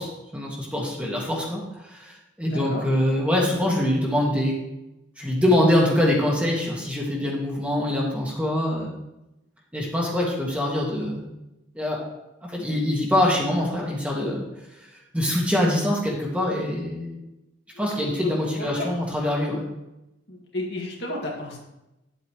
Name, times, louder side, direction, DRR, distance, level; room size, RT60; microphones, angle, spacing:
voice 1, 0.0-4.5 5.2-8.9 9.7-11.3 11.7-12.0 12.4-14.4 14.7-17.2 17.8-19.7, left 1 dB, 5° right, -3 dB, 1.7 m, -24 dB
voice 2, 2.5-2.8 17.7-18.9 20.3-21.6, left 1 dB, 60° left, -2 dB, 2.1 m, -33 dB
10.5 x 7.9 x 3.2 m, 0.93 s
head